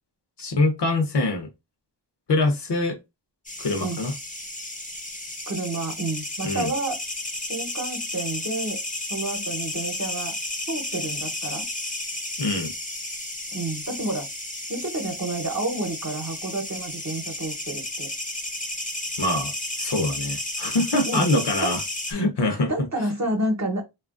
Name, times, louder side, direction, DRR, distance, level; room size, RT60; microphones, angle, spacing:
voice 1, 0.4-1.5 2.3-3.0 3.6-4.1 6.4-6.7 12.4-12.7 19.2-21.8 22.1-22.7, left 2 dB, 60° left, 0.8 m, -24 dB
sound 1, 3.5-22.1, left 1 dB, 15° left, 0.6 m, -33 dB
voice 2, 5.5-7.0 7.5-8.8 9.1-10.3 10.7-11.7 13.5-14.3 14.7-18.1 21.0-21.7 22.7-23.9, right 2 dB, 35° right, 0.9 m, -29 dB
2.9 x 2.4 x 2.4 m
wide cardioid pair, 70°, 46 cm